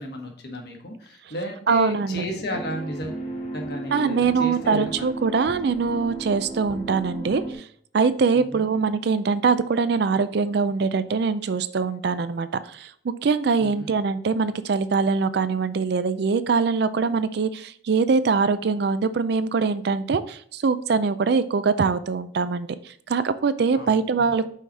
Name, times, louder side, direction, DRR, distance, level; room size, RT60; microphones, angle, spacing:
voice 1, 0.0-3.2 3.5-5.1 8.3-8.7 13.6-13.9 23.7-24.3, equal, 55° left, 2 dB, 1.3 m, -33 dB
voice 2, 1.7-2.2 3.9-7.7 7.9-24.5, right 5 dB, 55° right, 13 dB, 0.4 m, -23 dB
sound 1, 2.5-7.5, right 2 dB, 35° left, 1.1 m, -34 dB
5.6 x 4.8 x 4.0 m, 0.62 s
head